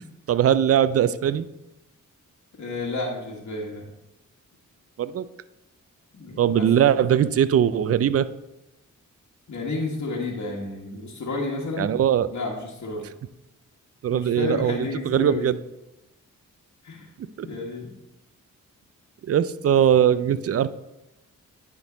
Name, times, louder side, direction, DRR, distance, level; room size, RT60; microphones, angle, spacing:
voice 1, 0.3-1.4 5.0-5.2 6.4-8.3 11.8-12.3 14.0-15.6 17.2-17.5 19.3-20.7, right 9 dB, 45° right, 15 dB, 0.4 m, -21 dB
voice 2, 2.6-3.8 6.1-6.7 6.9-7.0 9.5-11.9 12.3-13.0 14.1-15.5 16.8-17.1 17.4-17.9, left 2 dB, 55° left, -2 dB, 1.5 m, -31 dB
9.7 x 3.7 x 3.9 m, 0.94 s
cardioid pair, 50°, 33 cm